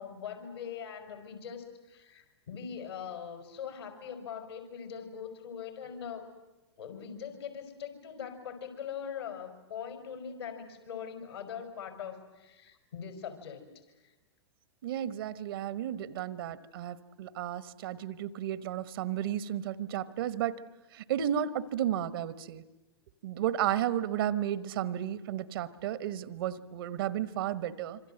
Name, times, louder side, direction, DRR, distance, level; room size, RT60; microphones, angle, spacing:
voice 1, 0.0-6.3 6.8-13.6 14.0-14.1, left 7 dB, 70° left, 6 dB, 5.2 m, -42 dB
voice 2, 14.8-20.6 20.9-22.6 23.2-28.0, right 11 dB, 55° right, 16 dB, 1.3 m, -33 dB
26.0 x 25.5 x 7.9 m, 1.1 s
figure-of-eight pair, 100°, 14 cm